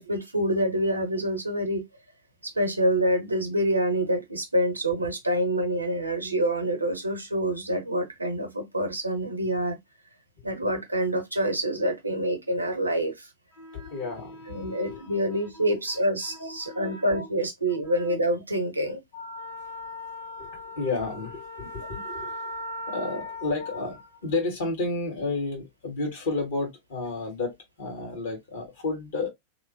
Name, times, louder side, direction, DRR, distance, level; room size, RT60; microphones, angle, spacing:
voice 1, 0.0-1.9 2.4-9.8 10.4-13.3 13.7-13.9 14.5-19.0 21.6-21.9, right 1 dB, 85° right, 0.7 m, -27 dB
voice 2, 13.5-15.6 16.2-17.2 17.9-18.0 19.1-29.3, left 3 dB, 55° left, 1.5 m, -32 dB
2.9 x 2.1 x 2.7 m
figure-of-eight pair, 90°, 0 cm